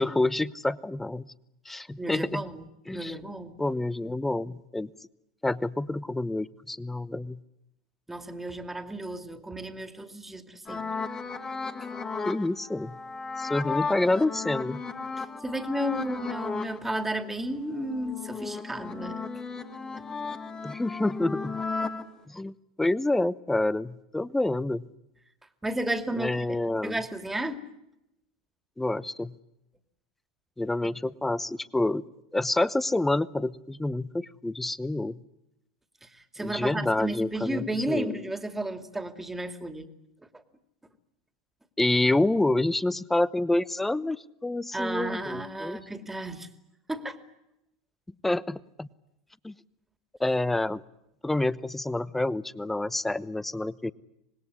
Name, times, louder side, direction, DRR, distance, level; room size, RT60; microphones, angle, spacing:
voice 1, 0.0-1.3 1.6-2.4 2.9-3.1 3.6-4.9 5.4-7.4 12.3-13.0 13.4-14.8 20.6-21.6 22.3-24.9 26.2-27.0 28.8-29.3 30.6-32.0 32.3-35.2 36.4-38.2 41.8-45.8 48.2-48.9 49.4-49.5 50.2-50.8 51.2-53.9, left 2 dB, 10° left, 19 dB, 0.9 m, -28 dB
voice 2, 2.0-2.7 2.9-3.5 8.1-10.8 15.2-19.2 25.6-26.6 26.8-27.6 36.0-36.1 36.3-39.9 44.7-46.5 46.9-47.2, right 1 dB, 10° right, 10 dB, 2.6 m, -33 dB
sound 1, 10.7-16.8 17.2-22.0, left 4 dB, 25° left, 2.0 m, -35 dB
26.0 x 20.0 x 9.8 m, 0.85 s
hypercardioid pair, 90°, 3 cm